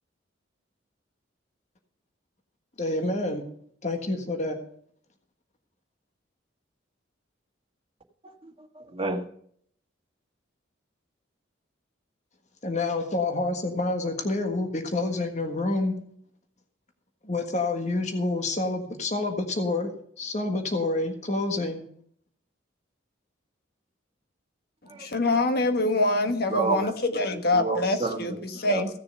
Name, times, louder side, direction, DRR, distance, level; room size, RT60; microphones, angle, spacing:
voice 1, 2.8-3.4 3.8-4.6 12.6-16.0 17.2-19.9 20.2-21.8, left 2 dB, 35° left, 1.6 m, -28 dB
voice 2, 8.2-9.2 24.9-25.1 26.5-26.9 27.5-28.9, right 3 dB, 30° right, 1.7 m, -31 dB
voice 3, 24.9-28.9, left 2 dB, 50° left, 1.4 m, -25 dB
16.0 x 6.8 x 6.7 m
head